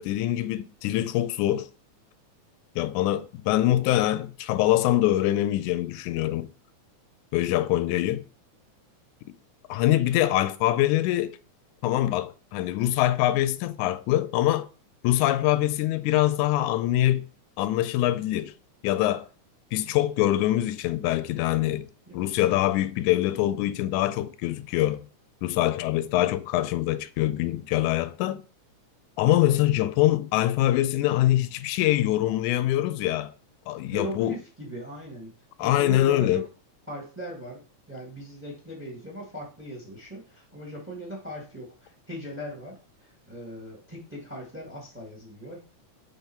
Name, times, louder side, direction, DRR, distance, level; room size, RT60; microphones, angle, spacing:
voice 1, 0.0-1.7 2.8-6.5 7.3-8.2 9.7-11.4 11.8-14.7 15.0-17.3 17.6-18.5 18.8-19.3 19.7-21.9 22.1-25.0 25.4-28.4 29.2-33.3 33.7-34.4 35.6-36.4, left 14 dB, 85° left, 2.0 m, -24 dB
voice 2, 33.9-35.3 35.6-36.5 36.9-45.6, right 1 dB, 10° right, 0.8 m, -39 dB
7.3 x 3.5 x 4.4 m
omnidirectional pair, 3.4 m